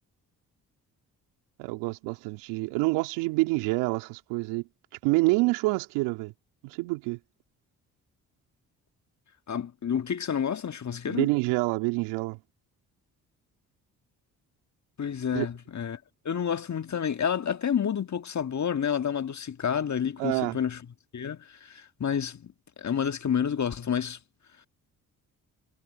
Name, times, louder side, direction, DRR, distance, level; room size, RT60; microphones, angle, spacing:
voice 1, 1.6-4.7 5.0-6.3 6.6-7.2 11.1-12.4 15.3-15.5 20.2-20.6, right 24 dB, 80° right, 2.8 m, -27 dB
voice 2, 9.5-11.3 15.0-16.0 16.2-20.8 21.1-22.5 22.8-24.2, left 8 dB, 40° left, 1.7 m, -29 dB
hypercardioid pair, 45°, 42 cm